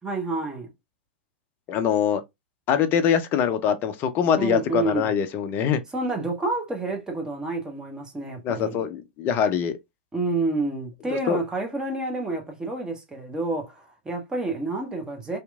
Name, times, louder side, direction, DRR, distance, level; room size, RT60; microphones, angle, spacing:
voice 1, 0.0-0.7 4.4-5.1 5.9-8.8 10.1-15.4, right 2 dB, 10° right, 0.9 m, -29 dB
voice 2, 1.7-2.2 2.7-5.8 8.4-9.8 11.3-11.4, left 8 dB, 35° left, 0.5 m, -23 dB
2.8 x 2.5 x 2.3 m
figure-of-eight pair, 95°, 6 cm